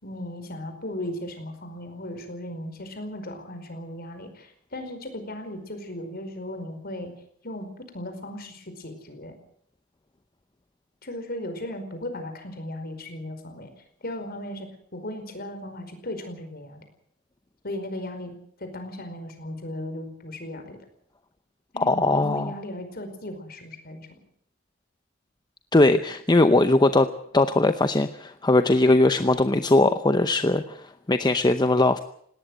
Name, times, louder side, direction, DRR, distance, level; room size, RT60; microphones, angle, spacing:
voice 1, 0.0-7.1 7.4-9.4 11.0-13.7 14.0-16.8 17.6-20.8 21.7-24.1, left 1 dB, 50° left, 8 dB, 4.9 m, -36 dB
voice 2, 21.8-22.5 25.7-32.0, left 2 dB, 20° left, 10 dB, 0.7 m, -20 dB
19.5 x 18.0 x 7.9 m, 0.66 s
head